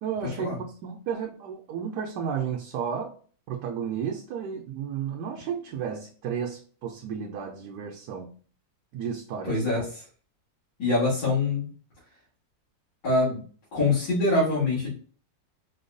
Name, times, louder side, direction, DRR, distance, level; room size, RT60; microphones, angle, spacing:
voice 1, 0.0-3.1 3.5-8.3 8.9-9.6, right 7 dB, 70° right, 1.1 m, -33 dB
voice 2, 9.4-10.0 10.8-11.7 13.0-13.4 13.7-14.9, left 2 dB, 65° left, 2.4 m, -24 dB
5.4 x 2.2 x 2.5 m
omnidirectional pair, 2.0 m